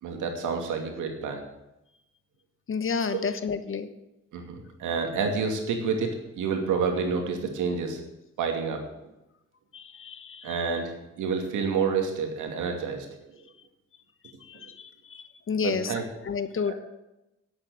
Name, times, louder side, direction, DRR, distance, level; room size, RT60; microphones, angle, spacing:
voice 1, 0.0-1.4 3.1-3.2 4.3-8.0 8.4-9.1 10.4-13.4 14.5-14.6 15.6-16.0 16.6-16.7, right 5 dB, 80° right, 3 dB, 2.6 m, -29 dB
voice 2, 2.7-3.9 9.7-10.6 14.4-16.7, left 5 dB, 45° left, 11 dB, 1.1 m, -31 dB
10.5 x 8.3 x 7.8 m, 0.93 s
cardioid pair, 90°, 30 cm